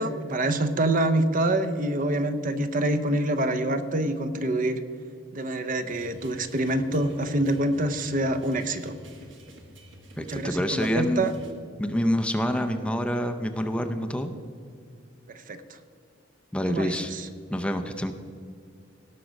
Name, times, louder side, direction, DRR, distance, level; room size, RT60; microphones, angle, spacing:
voice 1, 0.0-4.8 5.3-8.9 10.2-11.3 15.3-15.6 16.7-17.3, right 1 dB, 45° right, 10 dB, 0.7 m, -26 dB
sound 1, 5.9-11.5, equal, 85° right, 1.5 m, -49 dB
voice 2, 10.2-11.3 11.8-14.3 16.5-17.1 17.5-18.1, equal, 5° left, 6 dB, 0.5 m, -27 dB
17.5 x 6.0 x 5.1 m, 2.3 s
head